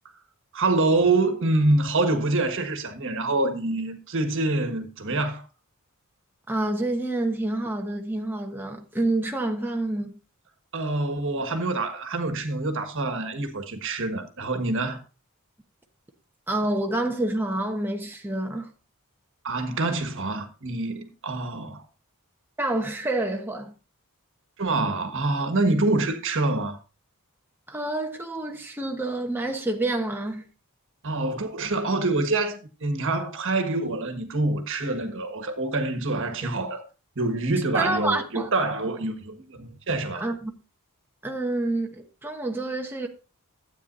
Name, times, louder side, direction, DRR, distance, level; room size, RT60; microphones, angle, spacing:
voice 1, 0.5-5.4 10.7-15.0 19.4-21.8 24.6-26.8 31.0-36.8 37.1-40.3, right 2 dB, 60° right, 1.5 m, -26 dB
voice 2, 6.5-10.2 16.5-18.7 22.6-23.7 27.7-30.5 37.7-38.5 40.1-40.5 41.2-43.1, right 2 dB, 10° right, 1.0 m, -28 dB
13.0 x 8.7 x 2.6 m
head